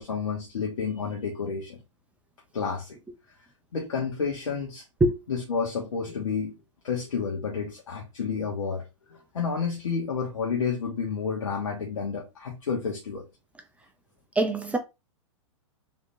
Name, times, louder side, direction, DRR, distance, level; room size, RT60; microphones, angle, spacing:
voice 1, 0.0-1.8 2.5-3.0 3.7-4.8 5.3-6.6 6.8-13.3, left 5 dB, 85° left, 1.2 m, -30 dB
voice 2, 14.4-14.8, right 2 dB, 10° right, 0.5 m, -22 dB
3.7 x 3.4 x 2.7 m
hypercardioid pair, 120°, 16 cm